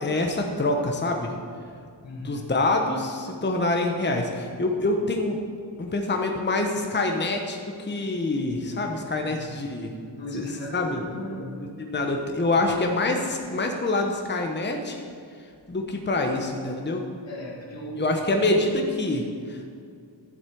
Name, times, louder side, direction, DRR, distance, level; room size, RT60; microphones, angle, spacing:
voice 1, 0.0-1.3 2.2-5.4 5.8-9.9 10.3-10.5 10.7-11.0 11.8-15.1 15.7-17.0 18.0-19.7, left 2 dB, 25° left, 2 dB, 1.0 m, -26 dB
voice 2, 2.0-2.5 9.0-9.9 10.1-11.7 17.2-18.7, equal, 75° left, -3 dB, 2.2 m, -37 dB
11.0 x 7.3 x 4.7 m, 2.3 s
cardioid pair, 65°, 44 cm